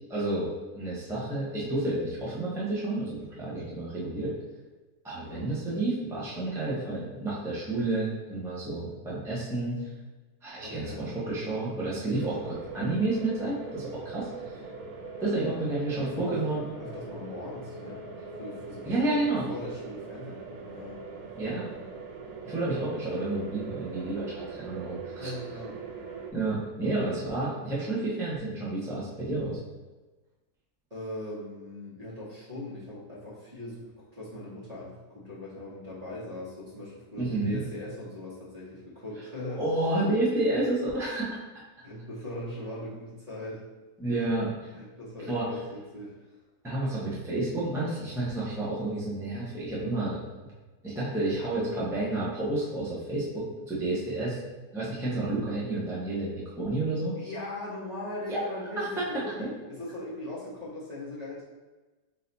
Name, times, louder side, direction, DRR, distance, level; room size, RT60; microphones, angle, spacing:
voice 1, 0.1-4.3 5.0-9.9 10.4-14.5 15.2-16.6 18.8-19.5 21.4-21.6 22.4-25.3 26.3-29.6 37.2-37.6 39.6-41.4 44.0-44.7 45.3-45.5 46.6-50.5 50.8-54.4 54.7-57.1 58.3-58.4 58.8-59.0 59.4-59.5, right 2 dB, 5° right, -8 dB, 0.3 m, -30 dB
voice 2, 10.6-11.0 16.0-18.1 18.3-21.0 25.2-25.9 30.9-39.6 41.8-43.6 44.1-44.3 44.7-46.3 57.2-61.4, left 1 dB, 25° right, -7 dB, 1.0 m, -40 dB
sound 1, 12.1-26.3, right 4 dB, 70° right, 1.0 m, -41 dB
4.0 x 2.7 x 3.9 m, 1.2 s
omnidirectional pair, 1.8 m